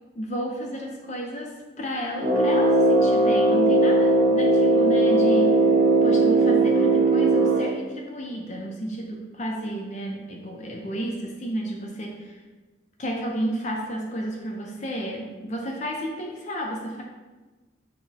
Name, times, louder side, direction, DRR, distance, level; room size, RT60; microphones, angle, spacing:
voice 1, 0.1-5.6 6.0-12.4 13.0-17.0, right 1 dB, 35° left, 0 dB, 0.5 m, -32 dB
Brass instrument, 2.2-7.8, right 2 dB, 30° right, 1.0 m, -19 dB
5.9 x 2.2 x 4.0 m, 1.2 s
head